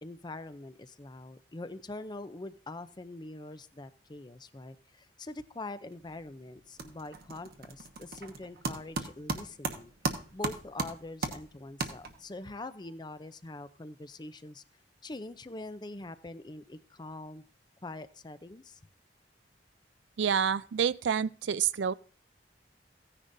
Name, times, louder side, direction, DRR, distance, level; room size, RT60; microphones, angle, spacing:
voice 1, 0.0-14.6 15.0-17.4 17.8-18.8, left 2 dB, 25° left, 0.6 m, -44 dB
sound 1, 5.9-6.3 6.6-12.4, right 3 dB, 60° right, 1.1 m, -37 dB
voice 2, 20.2-21.9, right 7 dB, 90° right, 0.4 m, -28 dB
15.5 x 9.9 x 2.7 m
head